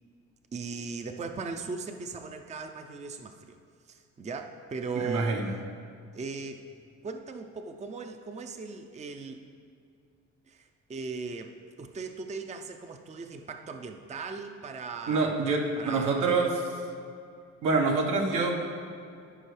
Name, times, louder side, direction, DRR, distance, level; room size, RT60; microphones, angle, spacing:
voice 1, 0.5-3.6 3.9-5.5 6.1-6.6 7.0-9.4 10.5-15.3 15.8-16.3, right 4 dB, 25° right, 6 dB, 0.5 m, -38 dB
voice 2, 5.0-5.5 15.1-16.5 17.6-18.6, right 3 dB, 85° right, 1 dB, 1.3 m, -26 dB
14.5 x 5.3 x 3.3 m, 2.4 s
cardioid pair, 90°, 30 cm